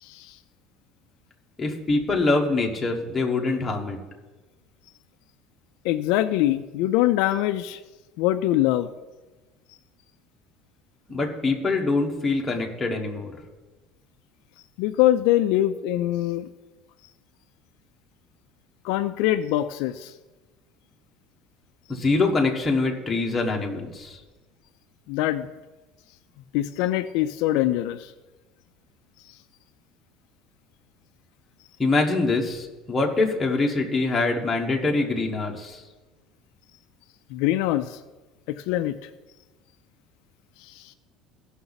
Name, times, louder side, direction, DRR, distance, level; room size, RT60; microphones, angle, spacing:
voice 1, 0.0-0.4 5.8-7.8 8.2-8.9 14.8-16.5 18.8-20.1 25.1-25.5 26.5-28.1 37.3-38.0 38.5-38.9 40.6-40.9, left 14 dB, 65° left, 9 dB, 0.4 m, -23 dB
voice 2, 1.6-4.0 11.1-13.4 21.9-24.2 31.8-35.8, left 3 dB, 10° left, 0 dB, 1.1 m, -24 dB
15.5 x 5.9 x 4.0 m, 1.2 s
cardioid pair, 175°, 0 cm